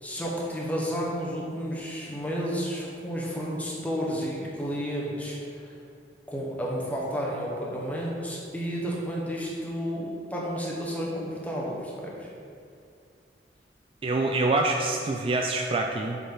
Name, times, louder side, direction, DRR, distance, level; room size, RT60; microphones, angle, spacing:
voice 1, 0.0-5.7 6.3-12.3, equal, 10° left, -4 dB, 1.1 m, -31 dB
voice 2, 14.0-16.2, right 2 dB, 30° right, 2 dB, 0.3 m, -25 dB
6.2 x 5.3 x 3.9 m, 2.4 s
head